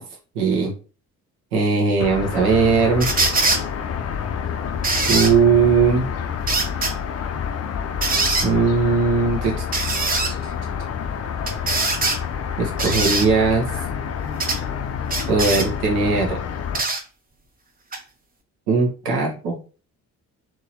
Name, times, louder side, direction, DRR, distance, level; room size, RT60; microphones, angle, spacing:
voice 1, 0.3-0.7 1.5-3.1 5.0-6.1 8.4-10.5 12.6-13.7 15.2-16.4 18.7-19.6, right 4 dB, 70° right, -1 dB, 1.2 m, -19 dB
sound 1, 2.0-16.8, left 7 dB, 35° left, 0.6 m, -28 dB
sound 2, 3.0-3.6 4.8-5.3 6.5-6.9 8.0-8.5 9.7-10.3 11.5-12.2 12.8-13.3 14.4-14.6 15.1-15.7 16.7-17.0 17.9-18.0, right 3 dB, 20° right, 0.8 m, -22 dB
3.6 x 3.0 x 2.9 m, 0.36 s
figure-of-eight pair, 45°, 45 cm